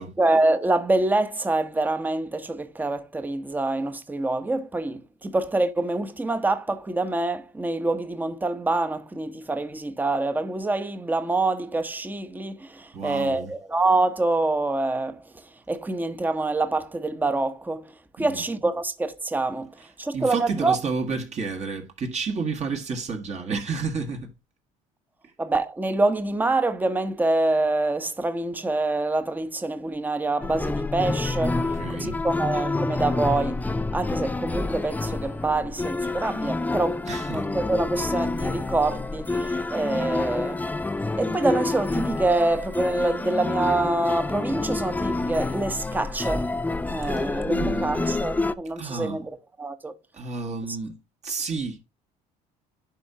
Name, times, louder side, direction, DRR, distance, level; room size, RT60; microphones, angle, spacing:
voice 1, 0.0-19.7 20.0-20.8 25.4-33.6 33.9-40.7 41.2-46.5 46.9-49.9, right 2 dB, 10° right, 0.9 m, -26 dB
voice 2, 12.9-13.5 18.2-18.4 20.1-24.3 31.5-32.2 37.1-37.5 47.1-48.1 48.8-49.2 50.1-51.0 51.2-51.8, right 4 dB, 40° right, 1.5 m, -31 dB
sound 1, 30.4-48.5, left 2 dB, 10° left, 0.4 m, -28 dB
10.5 x 4.4 x 2.8 m
supercardioid pair, 90°, 17 cm